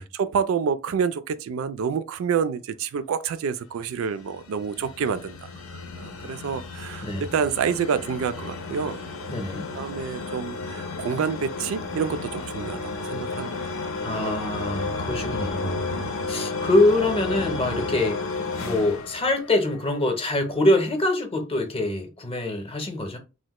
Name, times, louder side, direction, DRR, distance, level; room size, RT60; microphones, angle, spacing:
voice 1, 0.0-5.5 6.0-9.4 9.7-13.7, right 6 dB, 80° right, 0.3 m, -28 dB
sound 1, 3.9-20.0, left 3 dB, 80° left, 0.6 m, -33 dB
voice 2, 9.3-9.7 14.0-15.8 16.3-18.2 18.6-23.2, left 2 dB, 30° left, 0.6 m, -24 dB
3.1 x 2.1 x 2.9 m
head